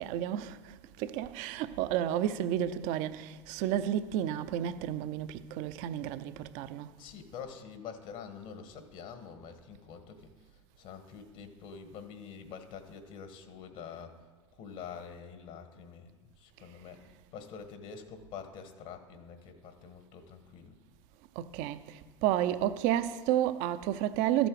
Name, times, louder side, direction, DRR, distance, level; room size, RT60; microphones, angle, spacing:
voice 1, 0.0-6.9 21.4-24.5, right 11 dB, 55° right, 0.6 m, -31 dB
voice 2, 7.0-14.2 14.5-20.8, left 6 dB, 55° left, 1.6 m, -46 dB
13.5 x 7.9 x 4.8 m
hypercardioid pair, 85°, 15 cm